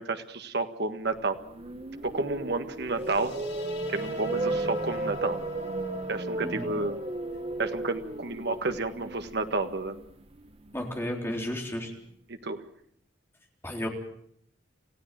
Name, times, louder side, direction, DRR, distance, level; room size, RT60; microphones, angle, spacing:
voice 1, 0.0-1.4 2.0-3.3 3.9-5.4 6.1-7.0 7.6-10.0 12.3-12.6, right 3 dB, 60° right, 7 dB, 1.7 m, -31 dB
sound 1, 1.2-11.3, right 2 dB, 30° right, 1.2 m, -35 dB
sound 2, 2.9-10.0, left 4 dB, 65° left, 6.5 m, -48 dB
voice 2, 10.7-11.9 13.6-13.9, left 1 dB, 15° left, 2 dB, 3.7 m, -33 dB
28.5 x 15.5 x 7.6 m, 0.68 s
head